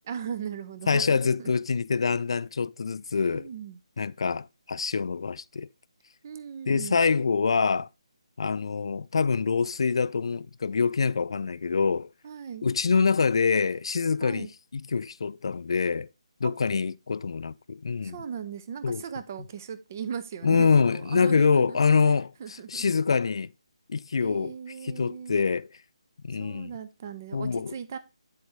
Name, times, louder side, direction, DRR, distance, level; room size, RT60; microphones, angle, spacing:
voice 1, 0.1-1.5 3.2-3.8 6.2-7.0 12.2-12.7 14.2-14.5 16.4-16.5 18.0-21.8 22.1-22.8 24.2-25.4 26.4-28.0, right 7 dB, 25° right, 0.4 m, -38 dB
voice 2, 0.9-3.5 4.0-5.7 6.7-7.9 8.4-12.1 12.6-14.5 14.7-16.1 16.4-18.2 18.8-19.0 20.4-23.5 23.9-24.5 24.8-25.7 26.2-26.7 27.3-27.7, left 5 dB, 55° left, 0.3 m, -25 dB
9.5 x 4.3 x 3.2 m
hypercardioid pair, 170°, 3 cm